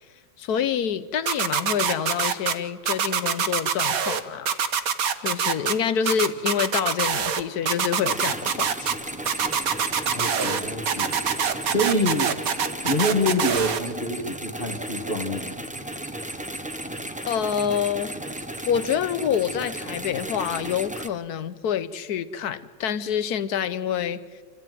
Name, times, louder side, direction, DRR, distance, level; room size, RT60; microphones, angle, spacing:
voice 1, 0.4-4.6 5.2-8.9 17.3-18.1 18.7-24.2, left 8 dB, 60° left, 14 dB, 1.3 m, -27 dB
sound 1, 1.3-2.5 2.9-4.2 4.5-5.7 6.1-7.4 7.7-8.9 9.3-10.6 10.9-13.8, right 7 dB, 55° right, 1.4 m, -24 dB
sound 2, 8.1-21.1, right 1 dB, 5° right, 0.6 m, -35 dB
voice 2, 10.1-11.2 11.7-12.3 12.8-15.6, left 1 dB, 30° left, -2 dB, 1.9 m, -26 dB
27.5 x 14.0 x 9.2 m, 1.6 s
omnidirectional pair, 2.0 m